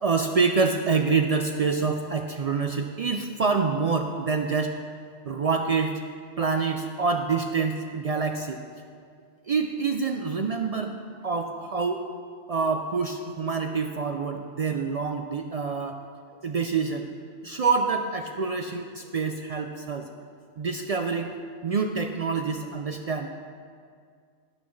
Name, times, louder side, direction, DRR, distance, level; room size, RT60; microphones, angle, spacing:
voice 1, 0.0-4.8 5.2-6.0 6.4-8.6 9.5-10.9 11.2-12.1 12.5-16.0 16.4-17.1 17.4-20.1 20.6-21.3 21.6-23.3, right 4 dB, 70° right, 4 dB, 0.3 m, -26 dB
12.0 x 9.4 x 3.1 m, 2.1 s
omnidirectional pair, 1.2 m